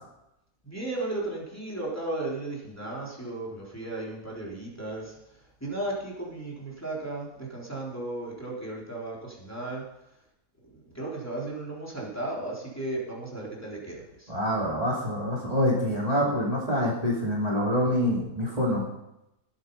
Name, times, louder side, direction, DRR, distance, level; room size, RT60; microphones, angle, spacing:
voice 1, 0.6-5.0 5.6-9.8 11.0-14.3, right 2 dB, 10° left, -5 dB, 3.6 m, -35 dB
voice 2, 14.3-18.8, left 1 dB, 25° right, -4 dB, 2.7 m, -26 dB
20.0 x 8.3 x 5.4 m, 0.87 s
omnidirectional pair, 1.7 m